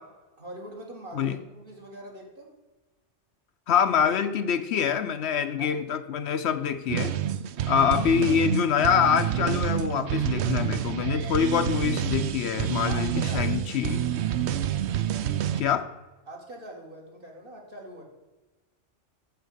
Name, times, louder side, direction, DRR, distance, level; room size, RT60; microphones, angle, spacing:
voice 1, 0.4-2.5 5.6-5.8 12.9-13.7 16.3-18.0, right 1 dB, 50° right, -1 dB, 2.1 m, -43 dB
voice 2, 3.7-7.1 7.7-14.0 15.6-15.9, left 8 dB, 70° left, 10 dB, 0.9 m, -25 dB
sound 1, 6.9-15.6, right 10 dB, 70° right, 0.8 m, -28 dB
8.1 x 7.0 x 6.4 m, 1.1 s
omnidirectional pair, 1.2 m